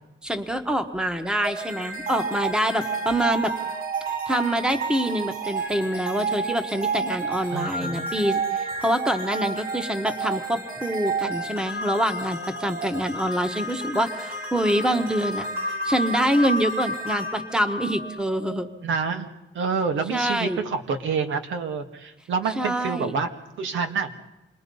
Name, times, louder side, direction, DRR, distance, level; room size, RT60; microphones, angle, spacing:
voice 1, 0.2-3.5 4.3-15.5 15.8-18.7 20.1-20.6 22.6-23.1, right 1 dB, 5° right, 8 dB, 1.2 m, -25 dB
sound 1, 1.4-18.6, right 3 dB, 50° right, 4.3 m, -30 dB
voice 2, 7.5-8.1 18.8-19.3 19.5-23.3 23.6-24.1, right 5 dB, 85° right, 6 dB, 2.1 m, -27 dB
27.5 x 21.0 x 5.5 m, 0.99 s
wide cardioid pair, 165°, 19 cm